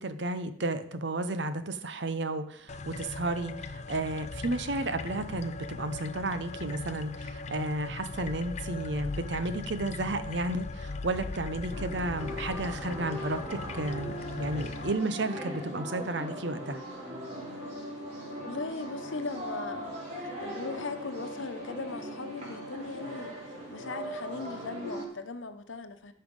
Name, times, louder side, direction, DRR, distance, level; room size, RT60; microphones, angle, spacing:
voice 1, 0.0-16.8, right 2 dB, 65° right, 11 dB, 0.9 m, -32 dB
sound 1, 2.7-14.9, left 3 dB, 35° left, 0.5 m, -39 dB
sound 2, 11.7-25.0, equal, 35° right, 3.0 m, -39 dB
voice 2, 18.4-26.1, left 3 dB, 85° left, 8 dB, 1.0 m, -39 dB
14.0 x 5.7 x 5.4 m, 0.67 s
head